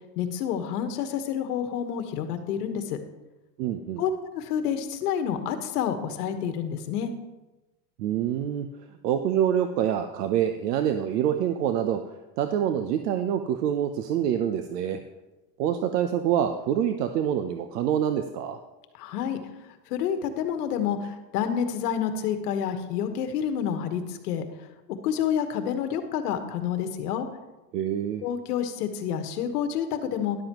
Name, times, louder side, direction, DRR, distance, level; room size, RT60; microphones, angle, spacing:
voice 1, 0.2-3.0 4.0-7.1 19.0-19.4 19.9-24.4 25.0-27.3 28.2-30.4, left 8 dB, 65° left, 8 dB, 1.4 m, -28 dB
voice 2, 3.6-4.0 8.0-8.7 9.0-15.0 15.6-18.6 27.7-28.2, right 9 dB, 70° right, 8 dB, 0.8 m, -26 dB
13.0 x 11.0 x 3.0 m, 1.1 s
supercardioid pair, 165°, 50 cm